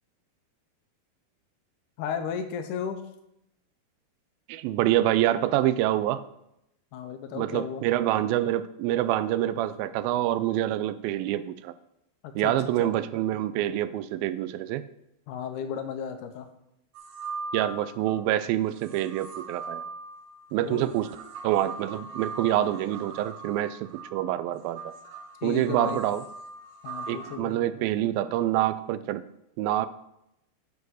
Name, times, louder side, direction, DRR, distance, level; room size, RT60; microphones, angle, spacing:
voice 1, 2.0-3.0 6.9-7.8 12.2-12.5 12.8-12.9 15.3-16.5 20.6-20.9 25.4-26.0 26.8-27.6, left 7 dB, 75° left, 7 dB, 2.1 m, -34 dB
voice 2, 4.5-6.2 7.3-11.7 12.4-14.8 17.5-19.9 20.5-21.1 21.4-24.9 25.4-26.2 27.1-29.2 29.6-29.9, right 13 dB, 85° right, 14 dB, 2.4 m, -26 dB
sound 1, 17.0-18.2 18.8-27.4, right 3 dB, 70° right, 1.8 m, -40 dB
9.5 x 4.8 x 6.2 m, 0.82 s
omnidirectional pair, 4.2 m